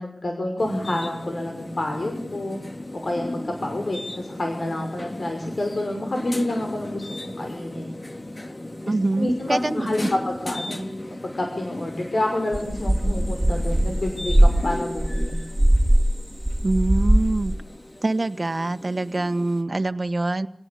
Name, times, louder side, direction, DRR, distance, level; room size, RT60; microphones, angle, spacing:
voice 1, 0.0-2.6 2.9-8.2 8.9-10.9 11.2-15.4, left 1 dB, 65° left, 3 dB, 5.8 m, -28 dB
sound 1, 0.6-19.6, left 1 dB, 40° left, 3.2 m, -36 dB
voice 2, 8.9-10.1 16.6-17.5 18.0-20.5, right 2 dB, 50° right, 8 dB, 1.6 m, -25 dB
sound 2, 12.5-16.1 16.4-17.6, right 1 dB, 10° right, 4.8 m, -20 dB
28.5 x 18.0 x 8.6 m, 0.66 s
wide cardioid pair, 50°, 0 cm